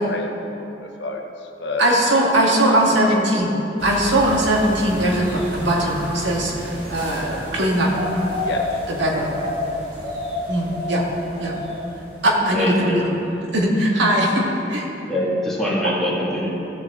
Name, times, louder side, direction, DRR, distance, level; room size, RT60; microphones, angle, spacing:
voice 1, 0.0-1.9 2.4-2.5 2.8-3.2 8.4-8.7, left 3 dB, 75° left, 2 dB, 1.0 m, -31 dB
voice 2, 1.8-3.5 3.8-7.9 8.9-9.3 10.5-11.0 11.4-11.5 12.2-13.1 13.5-14.8, right 1 dB, 85° right, -2 dB, 1.7 m, -20 dB
sound 1, 3.8-13.0 13.3-13.4, left 1 dB, 50° right, 2.4 m, -31 dB
voice 3, 12.5-13.0 15.1-16.5, left 1 dB, ahead, -8 dB, 2.1 m, -23 dB
15.0 x 7.1 x 3.7 m, 3.0 s
head